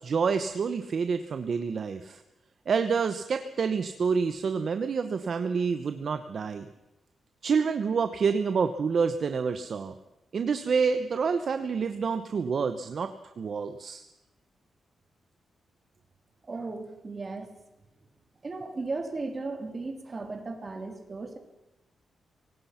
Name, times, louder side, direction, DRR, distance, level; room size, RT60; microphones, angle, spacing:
voice 1, 0.0-2.2 2.7-6.7 7.4-9.9 10.3-13.1 13.4-14.0, right 5 dB, 45° right, 9 dB, 1.0 m, -28 dB
voice 2, 16.4-17.5 18.4-21.4, right 3 dB, 30° right, 5 dB, 3.2 m, -36 dB
24.5 x 18.0 x 5.8 m, 0.98 s
wide cardioid pair, 155°, 0 cm